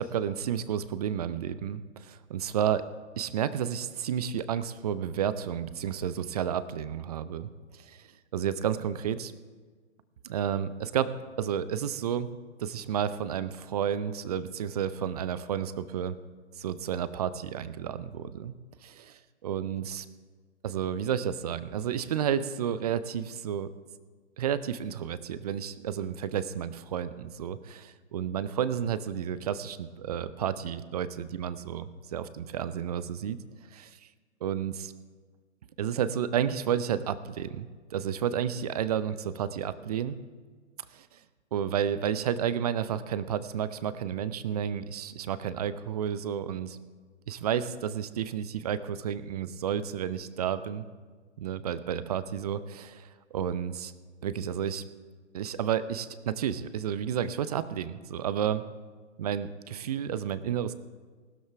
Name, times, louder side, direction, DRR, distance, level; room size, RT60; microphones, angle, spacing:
voice 1, 0.0-2.8 3.2-7.5 7.8-8.1 8.3-9.3 10.2-12.3 12.6-16.1 16.6-18.6 18.8-20.1 20.6-23.7 24.4-33.4 33.7-34.0 34.4-34.9 35.8-40.2 40.9-41.2 41.5-46.8 47.3-50.9 51.4-53.9 54.2-54.8 55.3-58.6 59.2-60.7, right 9 dB, 35° right, 15 dB, 0.6 m, -31 dB
19.5 x 12.5 x 3.5 m, 1.5 s
figure-of-eight pair, 125°, 35 cm